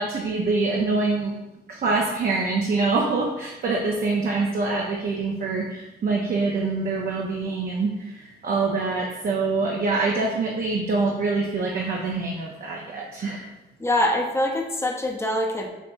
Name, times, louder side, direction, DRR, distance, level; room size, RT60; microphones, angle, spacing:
voice 1, 0.0-1.4 1.7-13.5, right 3 dB, 45° right, -1 dB, 0.7 m, -25 dB
voice 2, 13.8-15.8, left 1 dB, 15° left, 0 dB, 0.8 m, -24 dB
5.5 x 2.9 x 2.6 m, 1.0 s
cardioid pair, 90°, 20 cm